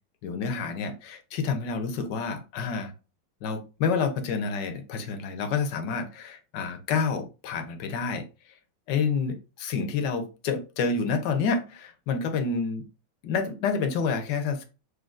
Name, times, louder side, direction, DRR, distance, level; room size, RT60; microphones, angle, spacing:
voice 1, 0.2-2.9 3.4-8.5 8.9-12.9 13.2-14.6, left 5 dB, 75° left, 1.3 m, -29 dB
6.3 x 2.7 x 2.4 m
omnidirectional pair, 2.0 m